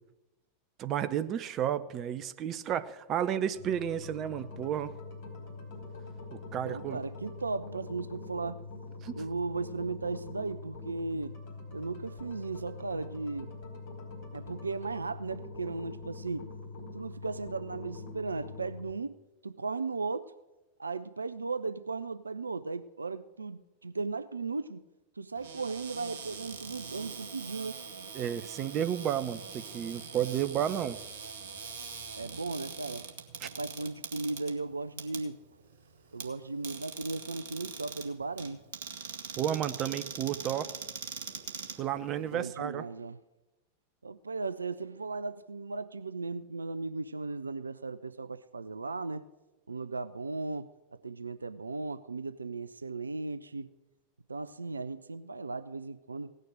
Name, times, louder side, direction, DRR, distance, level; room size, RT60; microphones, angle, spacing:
voice 1, 0.8-4.9 6.3-7.0 9.0-9.2 28.1-31.0 33.4-33.5 39.4-40.7 41.8-42.8, right 10 dB, 30° right, 0.8 m, -32 dB
sound 1, 3.5-18.9, left 3 dB, 45° left, 4.2 m, -44 dB
voice 2, 6.6-8.6 9.1-11.4 11.7-13.5 14.3-16.5 16.9-19.2 19.4-20.3 20.8-24.8 25.2-27.8 32.2-33.1 33.4-35.4 36.1-38.6 42.1-43.2 44.0-49.3 49.7-50.7 51.0-53.7 54.3-56.4, right 3 dB, 80° right, 0.4 m, -36 dB
Cupboard open or close, 25.3-42.4, right 6 dB, 60° right, 1.7 m, -43 dB
17.5 x 6.5 x 8.9 m
figure-of-eight pair, 90°, 0 cm